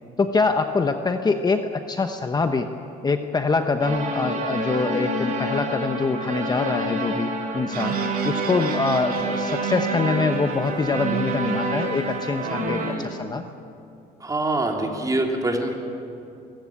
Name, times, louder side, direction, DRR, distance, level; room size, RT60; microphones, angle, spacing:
voice 1, 0.2-2.7 3.0-8.0 8.2-13.4, left 4 dB, 25° left, 7 dB, 1.0 m, -24 dB
sound 1, 3.8-12.9, right 2 dB, 50° right, 4.2 m, -27 dB
sound 2, 7.7-12.9, right 6 dB, 65° right, 4.4 m, -42 dB
voice 2, 12.8-13.2 14.2-15.7, right 2 dB, 20° right, 1 dB, 3.2 m, -25 dB
24.0 x 16.0 x 8.7 m, 2.6 s
cardioid pair, 110°, 17 cm